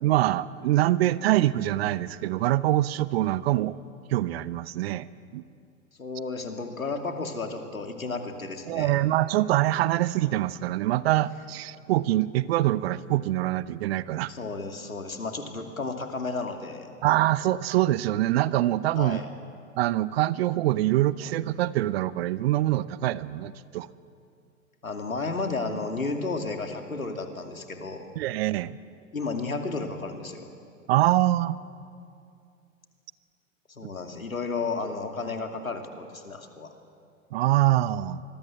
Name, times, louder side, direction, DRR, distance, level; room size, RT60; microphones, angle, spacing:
voice 1, 0.0-3.8 4.1-5.1 5.3-5.4 8.7-14.3 17.0-19.2 19.8-23.9 28.2-28.8 30.9-31.6 37.3-38.2, right 15 dB, 50° right, 17 dB, 0.8 m, -24 dB
voice 2, 6.0-9.0 14.3-16.9 19.0-19.3 24.8-28.1 29.1-30.5 33.7-36.7, left 3 dB, 85° left, 4 dB, 2.7 m, -33 dB
26.5 x 21.0 x 7.4 m, 2.4 s
figure-of-eight pair, 100°, 41 cm